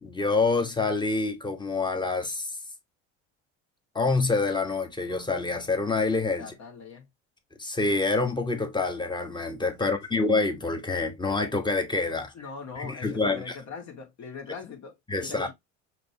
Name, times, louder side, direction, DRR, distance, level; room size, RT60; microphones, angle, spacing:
voice 1, 0.0-2.5 3.9-6.5 7.6-12.3 12.8-13.6 15.1-15.5, left 3 dB, 10° left, 1.3 m, -27 dB
voice 2, 6.4-7.1 9.8-10.2 12.3-15.5, left 5 dB, 50° left, 2.2 m, -42 dB
5.1 x 3.1 x 2.8 m
supercardioid pair, 90°, 36 cm